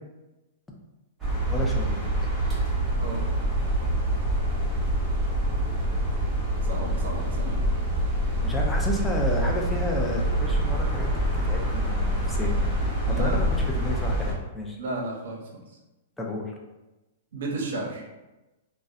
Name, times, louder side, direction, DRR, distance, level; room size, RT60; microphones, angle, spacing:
sound 1, 1.2-14.3, right 1 dB, 10° right, 0.8 m, -26 dB
voice 1, 1.5-2.1 8.4-11.1 11.3-12.7 13.2-14.8 16.2-16.5, left 1 dB, 5° left, -1 dB, 0.4 m, -31 dB
voice 2, 6.6-7.7 13.1-13.6 14.8-15.6 17.3-18.0, right 2 dB, 70° right, 0 dB, 0.6 m, -33 dB
2.5 x 2.0 x 2.4 m, 1.1 s
hypercardioid pair, 145°, 0 cm